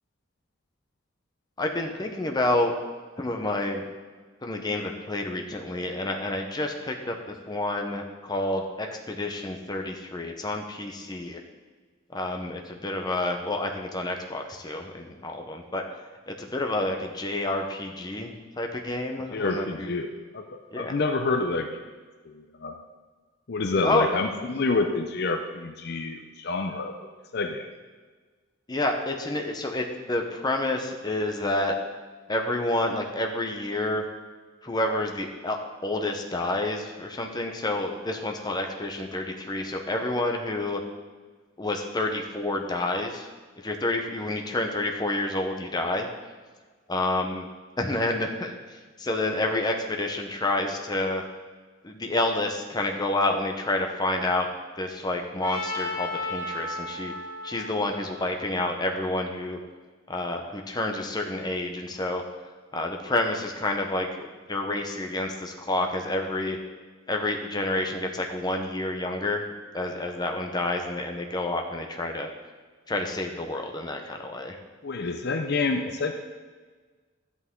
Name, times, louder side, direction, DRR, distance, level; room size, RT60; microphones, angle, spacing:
voice 1, 1.6-2.7 3.2-3.9 4.4-11.4 12.1-15.8 16.3-19.9 20.7-20.9 23.8-24.3 28.7-31.7 32.3-34.1 34.6-35.6 35.8-40.8 41.6-43.3 43.6-46.1 46.9-47.4 47.8-48.5 49.0-51.2 51.8-54.5 54.8-57.1 57.4-59.6 60.1-62.2 62.7-66.6 67.1-69.4 69.7-72.3 72.9-74.6, left 2 dB, 20° left, 3 dB, 0.9 m, -29 dB
voice 2, 19.3-20.5 20.8-21.8 22.3-22.7 23.5-26.9 27.3-27.7 74.8-76.1, left 3 dB, 55° left, 6 dB, 0.6 m, -28 dB
Trumpet, 55.4-59.5, left 2 dB, 80° left, 2.3 m, -35 dB
12.5 x 8.3 x 3.8 m, 1.4 s
head